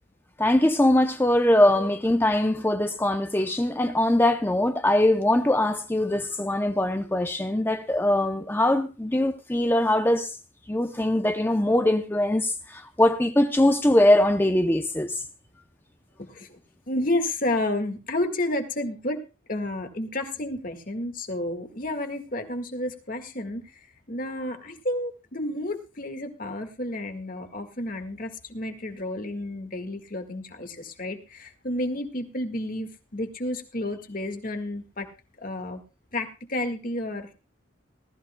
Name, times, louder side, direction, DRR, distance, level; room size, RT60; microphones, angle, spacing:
voice 1, 0.4-10.3 10.7-15.2, left 1 dB, 10° left, 0.6 m, -22 dB
voice 2, 16.9-19.2 19.5-23.6 24.1-35.0 35.4-35.8 36.1-37.3, left 1 dB, 45° left, 1.8 m, -31 dB
19.0 x 14.0 x 2.3 m
head